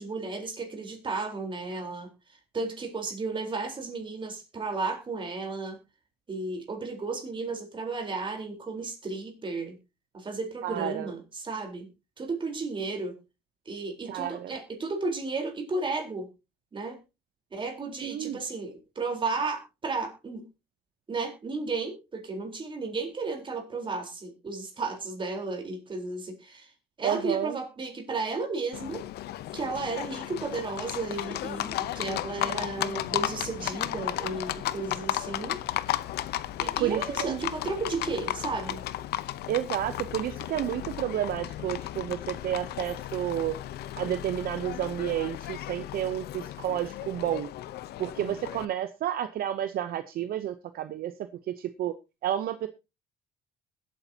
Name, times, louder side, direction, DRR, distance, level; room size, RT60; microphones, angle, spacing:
voice 1, 0.0-2.1 2.5-5.8 6.3-9.8 10.1-11.9 12.2-13.1 13.7-16.3 16.7-17.0 17.5-20.4 21.1-26.7 27.0-29.0 29.5-35.6 36.6-38.8, right 3 dB, 30° right, 3 dB, 4.1 m, -33 dB
voice 2, 10.6-11.1 14.1-14.5 18.0-18.4 27.0-27.6 36.8-37.4 39.5-43.6 44.0-47.5 48.0-51.1 51.5-51.9 52.2-52.7, right 11 dB, 60° right, 11 dB, 0.8 m, -30 dB
Livestock farm animals working animals, 28.7-48.6, left 14 dB, 75° left, 0.8 m, -34 dB
21.5 x 8.7 x 2.8 m, 0.27 s
cardioid pair, 110°, 17 cm